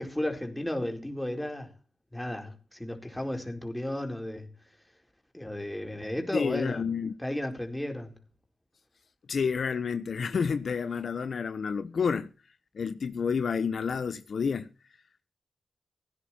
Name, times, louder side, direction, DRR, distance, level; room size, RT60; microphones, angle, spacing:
voice 1, 0.0-1.7 2.1-4.5 5.3-6.8 7.2-8.2, left 1 dB, 10° left, 4.3 m, -34 dB
voice 2, 6.3-7.1 9.3-12.3 12.7-14.7, left 6 dB, 70° left, 1.0 m, -29 dB
17.0 x 10.0 x 4.4 m
cardioid pair, 50°, 0 cm